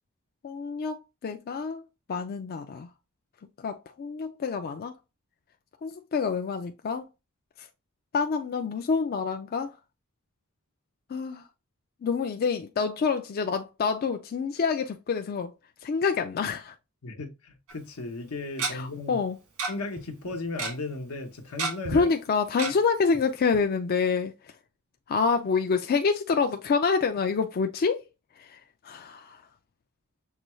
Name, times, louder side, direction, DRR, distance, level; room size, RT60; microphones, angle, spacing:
voice 1, 0.4-1.0 1.2-1.8 2.1-2.9 3.6-4.9 5.8-7.0 8.1-9.7 11.1-11.4 12.0-15.5 15.8-16.7 18.7-19.4 21.9-24.3 25.1-28.0 28.4-28.6 28.8-29.4, left 5 dB, 45° left, 0.4 m, -27 dB
voice 2, 17.0-19.2 19.7-22.1 22.7-22.8, left 2 dB, 80° left, 0.9 m, -36 dB
Tick-tock, 17.7-17.8 18.6-18.7 19.6-19.7 20.0-20.1 20.3-20.7 21.6-22.0 22.6-22.7 23.1-23.2 23.5-23.6, right 3 dB, 90° right, 1.6 m, -30 dB
6.5 x 2.3 x 3.0 m
head